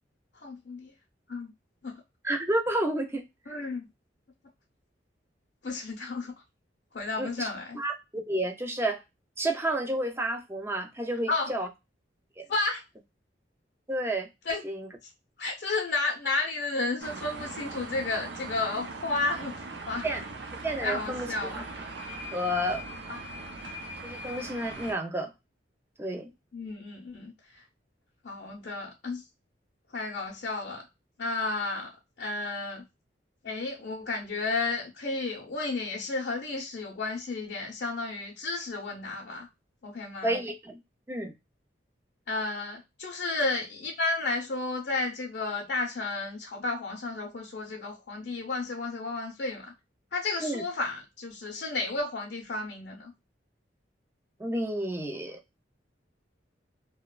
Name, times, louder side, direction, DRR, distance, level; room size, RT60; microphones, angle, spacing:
voice 1, 0.4-0.9 1.3-1.5 1.8-2.0 3.5-3.9 5.6-6.3 6.9-7.8 11.3-11.5 12.5-12.8 14.5-14.6 15.4-19.6 19.9-20.1 20.8-21.7 23.1-23.2 26.5-27.6 28.2-29.2 29.9-30.8 31.2-31.9 32.2-32.8 33.4-39.5 39.8-40.3 42.3-49.7 50.1-53.1, left 3 dB, 60° left, 0.6 m, -32 dB
voice 2, 2.2-3.2 7.2-7.5 7.7-9.0 9.4-11.7 12.4-12.5 13.9-14.3 14.6-14.9 20.0-20.2 20.6-21.6 22.3-22.8 24.0-25.3 26.0-26.3 40.2-40.8 41.1-41.3 50.4-50.6 54.4-55.4, right 1 dB, 15° right, 0.5 m, -30 dB
sound 1, 17.0-24.9, right 2 dB, 65° right, 0.6 m, -40 dB
2.9 x 2.1 x 2.2 m
head